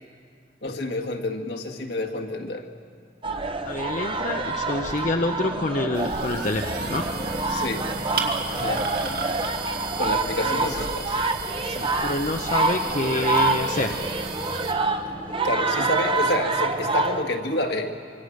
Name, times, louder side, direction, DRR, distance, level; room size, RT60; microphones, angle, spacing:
voice 1, 0.6-2.7 7.5-7.8 8.5-8.9 10.0-11.2 15.4-17.9, left 2 dB, 65° left, 3 dB, 2.0 m, -28 dB
sound 1, 3.2-17.2, right 3 dB, 30° right, 1.0 m, -27 dB
voice 2, 3.6-7.0 10.3-10.9 11.6-13.9, left 2 dB, 45° left, 3 dB, 0.8 m, -27 dB
sound 2, 5.9-14.7, right 4 dB, 55° right, 2.4 m, -34 dB
26.0 x 24.5 x 6.5 m, 2.2 s
head